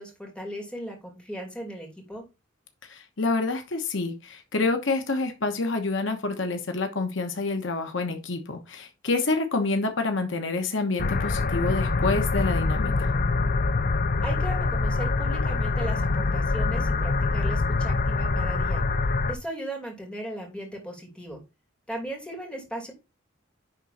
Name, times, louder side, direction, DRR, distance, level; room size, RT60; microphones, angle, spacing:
voice 1, 0.0-2.2 14.2-18.8 19.3-21.4 21.9-22.9, right 1 dB, 5° left, 2.7 m, -37 dB
voice 2, 2.9-13.1, left 3 dB, 70° left, 1.1 m, -28 dB
sound 1, 11.0-19.4, left 3 dB, 45° left, 0.6 m, -25 dB
10.0 x 3.7 x 4.2 m
head